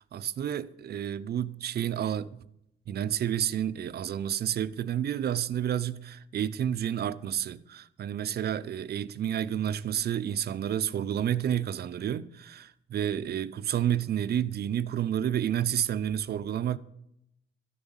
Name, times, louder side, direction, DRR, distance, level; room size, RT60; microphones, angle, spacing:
voice 1, 0.0-2.4 2.9-16.8, right 10 dB, 55° right, 0.5 m, -30 dB
12.0 x 7.0 x 7.2 m
cardioid pair, 90°, 20 cm